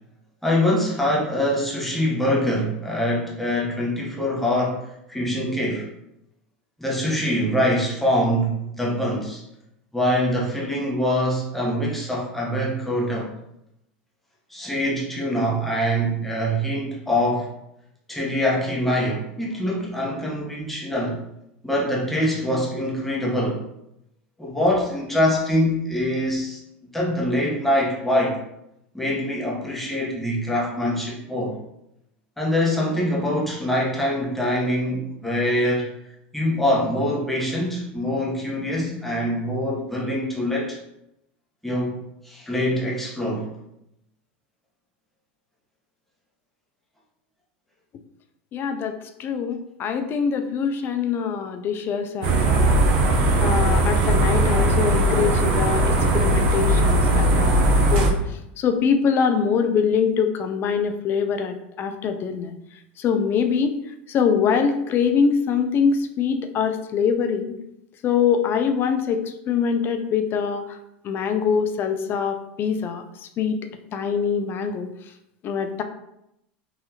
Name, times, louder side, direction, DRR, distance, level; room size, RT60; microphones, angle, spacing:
voice 1, 0.4-5.9 6.8-9.4 9.9-13.3 14.5-17.5 18.1-21.2 21.6-23.6 24.4-26.6 26.9-28.4 28.9-31.6 32.4-35.9 36.3-40.8 41.6-42.0 42.2-43.5, equal, 5° left, -4 dB, 1.0 m, -24 dB
voice 2, 48.5-52.8 53.4-58.2 58.6-62.5 63.0-63.8 64.1-67.6 68.0-70.8 71.0-73.0 73.4-73.6 73.9-74.9 75.4-75.8, left 6 dB, 40° left, 8 dB, 0.4 m, -23 dB
sound 1, 52.2-58.1, right 1 dB, 70° right, 0.7 m, -19 dB
3.9 x 2.7 x 2.9 m, 0.81 s
hypercardioid pair, 105°, 6 cm